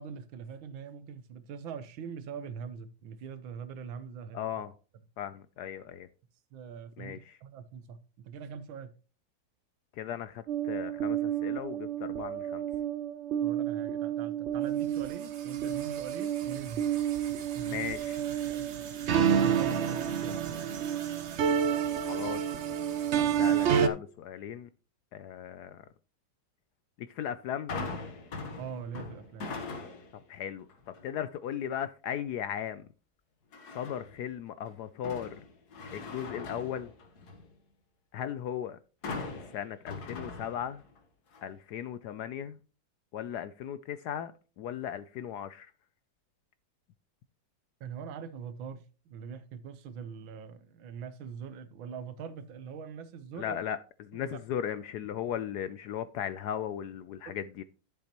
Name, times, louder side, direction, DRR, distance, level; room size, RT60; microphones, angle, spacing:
voice 1, 0.0-4.5 6.5-8.9 13.4-16.8 17.5-17.9 18.5-18.6 19.1-20.4 28.6-29.5 47.8-53.6 54.1-54.2 57.3-57.4, right 7 dB, 85° right, 1.7 m, -43 dB
voice 2, 4.3-4.7 5.2-6.1 7.0-7.4 10.0-12.6 17.6-18.2 22.0-22.4 23.1-24.7 25.1-25.9 27.0-27.8 30.1-30.7 31.0-32.9 33.7-35.3 35.9-36.9 38.1-38.8 39.5-40.8 41.4-42.6 43.1-45.7 53.4-57.6, left 9 dB, 75° left, 0.9 m, -37 dB
sound 1, 10.5-23.9, right 8 dB, 60° right, 0.7 m, -30 dB
sound 2, 27.7-30.2 30.7-31.1 33.5-34.2 34.7-37.5 39.0-41.0 41.3-41.4, left 3 dB, 55° left, 1.7 m, -41 dB
11.5 x 7.3 x 2.9 m
omnidirectional pair, 2.1 m